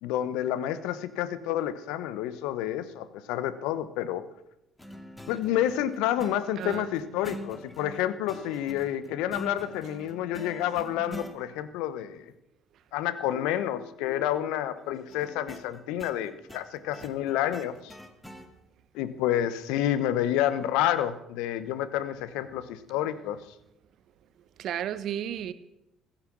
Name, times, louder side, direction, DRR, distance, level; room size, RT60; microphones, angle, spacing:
voice 1, 0.0-4.2 5.3-12.3 12.9-17.9 18.9-23.4, left 11 dB, 75° left, 1.0 m, -29 dB
sound 1, 4.8-11.4 15.1-18.5, equal, 10° left, 2.5 m, -44 dB
voice 2, 6.6-6.9 24.6-25.5, right 10 dB, 60° right, 1.0 m, -33 dB
15.5 x 13.0 x 6.2 m
hypercardioid pair, 55°, 0 cm